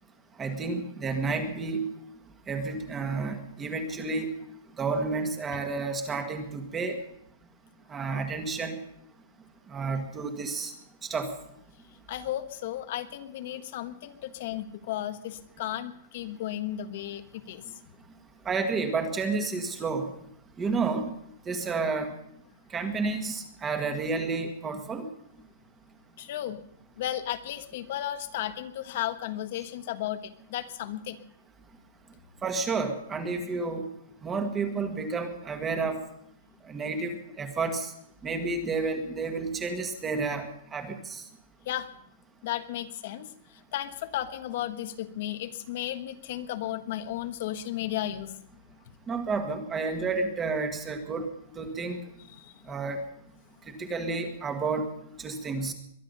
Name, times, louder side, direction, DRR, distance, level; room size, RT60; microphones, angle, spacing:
voice 1, 0.4-1.9 2.5-4.3 4.8-7.0 7.9-8.8 9.7-10.7 11.0-11.3 18.5-20.1 20.6-21.1 21.5-22.1 22.7-25.0 32.4-33.9 34.2-36.0 36.6-37.9 38.2-41.2 49.1-51.3 51.6-52.0 52.7-53.0 53.7-54.9 55.2-55.7, right 4 dB, 10° right, 6 dB, 1.8 m, -30 dB
voice 2, 12.1-17.6 26.2-26.6 27.0-31.2 41.6-41.9 42.4-48.4 52.3-52.7, left 12 dB, 45° left, 10 dB, 1.3 m, -34 dB
22.5 x 11.0 x 5.5 m, 0.72 s
supercardioid pair, 175°, 0 cm